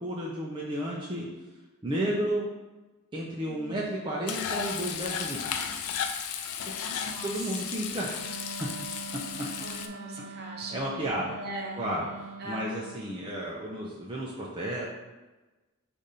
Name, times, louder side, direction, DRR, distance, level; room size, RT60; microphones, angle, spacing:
voice 1, 0.0-1.3 1.8-2.4 3.1-5.4 7.2-8.3 9.4-9.5 10.7-11.4 11.8-14.8, right 1 dB, 20° right, -5 dB, 0.5 m, -32 dB
voice 2, 3.5-3.8 6.9-7.3 9.6-10.9 11.3-11.8 12.4-12.6, right 1 dB, 45° right, -1 dB, 0.8 m, -40 dB
Frying (food), 4.3-9.9, left 7 dB, 80° left, 0.4 m, -34 dB
Wind instrument woodwind instrument, 8.1-13.0, right 4 dB, 90° right, 0.4 m, -43 dB
5.1 x 2.6 x 4.1 m, 1.2 s
head